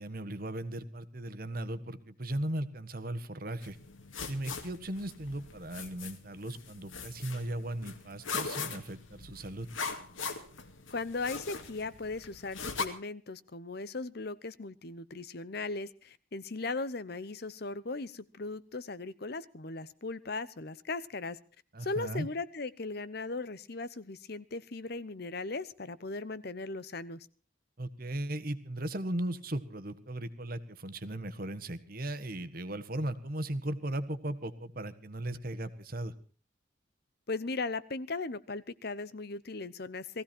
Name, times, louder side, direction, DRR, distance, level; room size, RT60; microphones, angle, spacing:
voice 1, 0.0-3.8 4.3-9.7 21.7-22.3 27.8-36.1, right 1 dB, 45° right, 10 dB, 1.5 m, -37 dB
sound 1, 3.6-12.9, left 5 dB, 85° left, 2.5 m, -41 dB
voice 2, 10.9-21.4 21.8-27.3 37.3-40.2, left 3 dB, 50° left, 16 dB, 0.9 m, -38 dB
19.0 x 15.5 x 4.4 m, 0.38 s
head